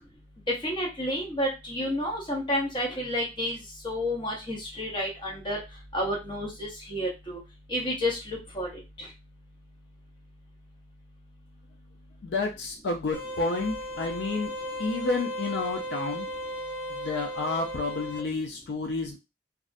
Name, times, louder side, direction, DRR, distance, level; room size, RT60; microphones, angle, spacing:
voice 1, 0.6-3.6 3.8-5.6 5.9-7.4 7.7-8.7 9.0-9.1, equal, 25° left, -2 dB, 0.8 m, -30 dB
voice 2, 12.2-14.5 14.8-16.3 16.9-19.2, left 3 dB, 70° left, 2 dB, 0.4 m, -30 dB
sound 1, 13.1-18.2, equal, 40° right, 1.0 m, -36 dB
2.4 x 2.1 x 2.5 m, 0.25 s
head